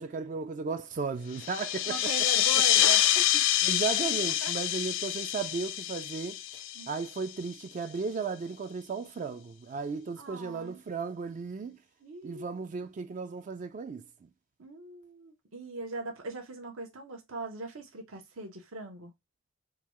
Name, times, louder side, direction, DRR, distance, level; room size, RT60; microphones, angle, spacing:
voice 1, 0.0-2.0 2.3-2.4 3.6-6.4 6.9-11.8 12.2-14.3, right 5 dB, 40° right, 0.3 m, -35 dB
sound 1, 1.3-7.5, left 12 dB, 65° left, 0.4 m, -27 dB
voice 2, 1.9-3.4 4.4-4.6 6.7-7.0 10.2-10.8 12.0-12.5 14.6-19.1, right 2 dB, 80° right, 1.0 m, -40 dB
3.7 x 2.3 x 2.9 m
head